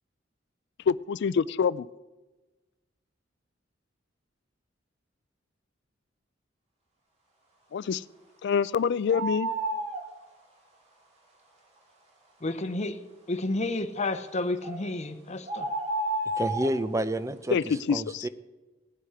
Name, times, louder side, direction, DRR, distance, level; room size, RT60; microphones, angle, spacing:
voice 1, 0.9-1.9 7.7-8.0 8.4-9.5 17.5-18.3, left 6 dB, 60° left, 0.3 m, -26 dB
sound 1, 9.1-10.0 14.6-14.8 15.5-16.7, right 1 dB, 35° right, 2.5 m, -30 dB
voice 2, 12.4-13.0 13.3-15.7, left 2 dB, 35° left, 0.8 m, -31 dB
voice 3, 16.4-18.3, right 1 dB, 15° right, 0.5 m, -30 dB
18.0 x 8.3 x 4.9 m
head